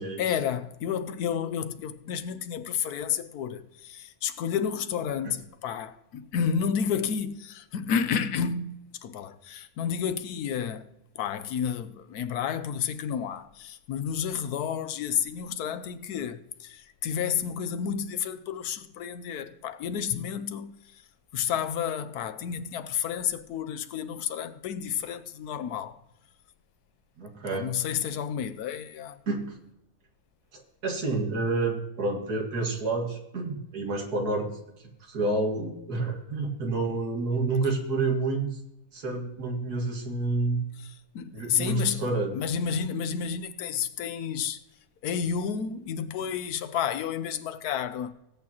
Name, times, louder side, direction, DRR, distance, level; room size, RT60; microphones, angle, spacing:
voice 1, 0.2-10.9 11.2-21.0 21.3-26.0 27.5-29.2 40.8-44.6 45.0-48.1, left 7 dB, 80° left, 1.3 m, -31 dB
voice 2, 27.2-27.7 29.3-29.6 30.5-34.5 35.0-38.6 38.9-40.6 41.3-42.4, right 3 dB, 85° right, 2.4 m, -29 dB
18.0 x 8.7 x 3.0 m
omnidirectional pair, 1.6 m